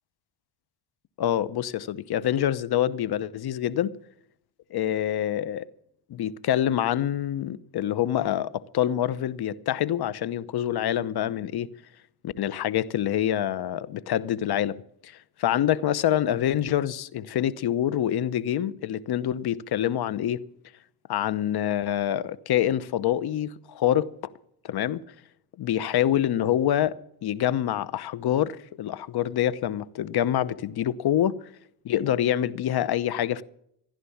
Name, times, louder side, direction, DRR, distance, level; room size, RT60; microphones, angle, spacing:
voice 1, 1.2-3.9 4.7-5.7 6.1-11.7 12.2-14.8 15.0-20.4 21.1-24.1 24.6-25.0 25.6-26.9 27.2-31.4 31.8-33.4, left 11 dB, 50° left, 1.0 m, -26 dB
15.5 x 11.0 x 7.2 m
supercardioid pair, 90°, 49 cm